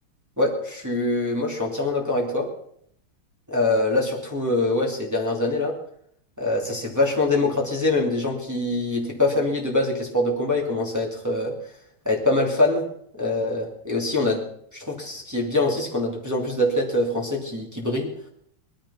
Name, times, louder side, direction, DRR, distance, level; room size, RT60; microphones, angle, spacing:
voice 1, 0.4-2.5 3.5-5.7 6.4-11.6 12.0-12.9 13.2-14.4 14.7-18.1, left 2 dB, 10° right, -3 dB, 2.7 m, -24 dB
19.5 x 12.5 x 5.8 m, 0.68 s
omnidirectional pair, 2.4 m